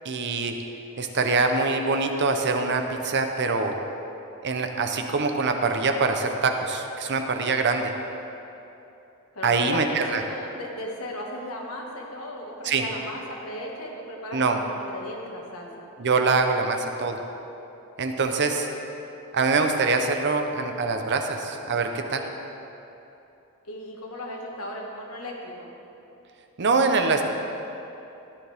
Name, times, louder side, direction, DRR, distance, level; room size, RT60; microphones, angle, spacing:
voice 1, 0.0-0.6 1.0-3.8 4.4-7.9 9.4-10.2 12.6-12.8 14.3-14.6 16.0-17.2 18.0-18.7 19.3-22.2 26.6-27.3, right 4 dB, 55° right, 5 dB, 0.8 m, -24 dB
voice 2, 9.4-15.8 23.7-25.7, left 1 dB, 80° left, -1 dB, 1.7 m, -36 dB
14.5 x 9.9 x 3.5 m, 2.9 s
head